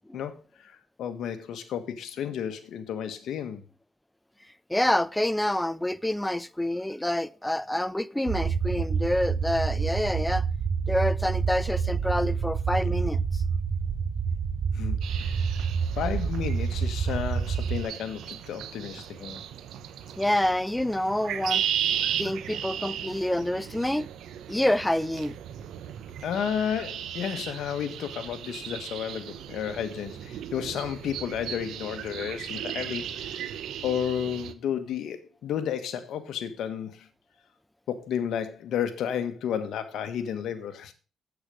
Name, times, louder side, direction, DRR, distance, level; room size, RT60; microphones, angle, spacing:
voice 1, 0.1-3.6 14.7-15.6 15.9-19.4 26.2-33.5 33.8-37.1 37.9-40.9, left 8 dB, 80° left, 1.4 m, -32 dB
voice 2, 4.7-10.4 10.9-13.4 20.2-21.6 22.2-24.1 24.5-25.4, left 1 dB, 10° left, 0.5 m, -27 dB
sound 1, 8.3-17.8, right 6 dB, 60° right, 1.0 m, -28 dB
sound 2, 15.0-34.5, right 10 dB, 85° right, 0.8 m, -36 dB
8.7 x 8.2 x 5.0 m
cardioid pair, 80°, 0 cm